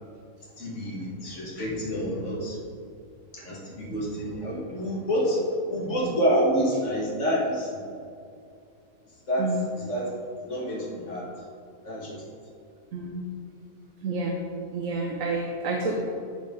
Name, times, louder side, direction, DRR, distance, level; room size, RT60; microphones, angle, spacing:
voice 1, 0.6-2.6 3.3-5.4 5.7-7.8 9.3-9.5 9.8-10.1 10.4-11.3 11.8-12.2, equal, 50° left, -4 dB, 2.1 m, -28 dB
voice 2, 12.9-13.3 14.0-14.4 14.7-15.9, right 3 dB, 65° right, 0 dB, 1.2 m, -29 dB
13.5 x 4.7 x 3.7 m, 2.4 s
omnidirectional pair, 1.6 m